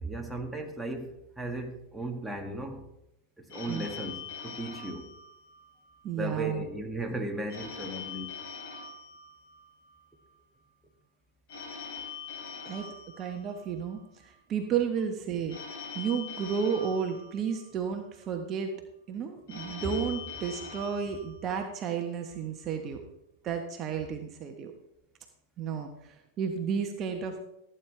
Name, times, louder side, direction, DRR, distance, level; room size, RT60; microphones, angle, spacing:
voice 1, 0.0-2.9 3.4-5.1 6.2-8.4, right 1 dB, 5° right, 1 dB, 2.0 m, -36 dB
Telephone, 3.5-6.0 7.5-10.0 11.5-14.0 15.5-18.0 19.5-22.0, left 5 dB, 60° left, 3.9 m, -43 dB
voice 2, 6.0-6.7 12.6-18.7 19.1-23.0 23.4-24.7 25.6-27.4, right 7 dB, 35° right, 4 dB, 1.3 m, -32 dB
16.0 x 9.2 x 3.4 m, 0.82 s
hypercardioid pair, 95°, 0 cm